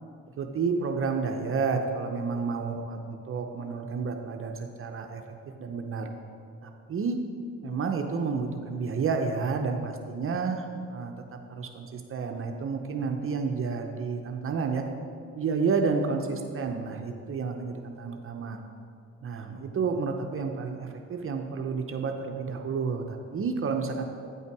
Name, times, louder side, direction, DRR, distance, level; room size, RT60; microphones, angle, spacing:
voice 1, 0.4-5.2 5.6-6.1 6.6-7.2 7.6-14.8 15.4-18.6 19.2-24.0, right 5 dB, 45° right, 4 dB, 0.6 m, -30 dB
9.3 x 5.5 x 4.7 m, 2.4 s
cardioid pair, 90°, 30 cm